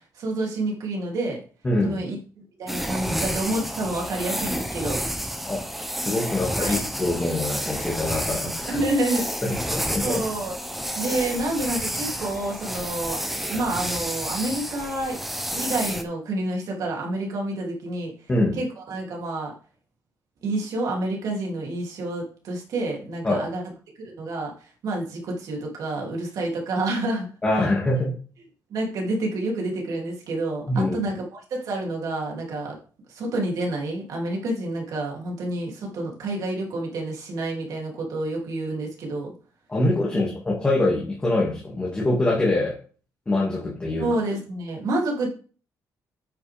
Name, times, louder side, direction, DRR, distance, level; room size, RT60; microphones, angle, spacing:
voice 1, 0.0-1.4 1.8-5.0 6.6-6.8 8.7-9.6 10.0-10.5 11.0-13.2 13.5-15.2 15.5-18.1 18.6-19.5 20.4-23.6 24.0-27.3 27.6-27.7 28.7-32.8 33.1-39.3 40.1-40.2 44.0-45.3, right 2 dB, 60° right, -1 dB, 3.1 m, -28 dB
voice 2, 1.6-2.0 5.5-5.6 6.0-8.8 9.5-10.2 18.3-18.6 23.2-23.4 27.4-28.1 30.7-31.0 39.7-42.7 43.3-44.1, left 2 dB, 15° left, -4 dB, 2.2 m, -24 dB
sound 1, 2.7-16.0, equal, ahead, 0.8 m, -30 dB
9.2 x 6.6 x 3.6 m, 0.39 s
cardioid pair, 175°, 7 cm